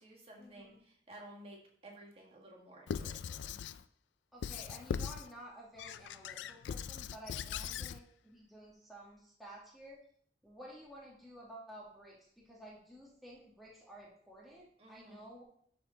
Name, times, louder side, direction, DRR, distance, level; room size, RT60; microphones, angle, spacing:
voice 1, 0.0-3.6 14.8-15.3, right 1 dB, 35° right, -1 dB, 1.6 m, -54 dB
Squeak / Writing, 2.9-3.8 4.4-5.3 5.8-8.0, left 7 dB, 90° left, 0.3 m, -40 dB
voice 2, 4.3-10.0 10.4-15.4, right 1 dB, ahead, -5 dB, 1.4 m, -53 dB
12.0 x 4.3 x 3.8 m, 0.63 s
head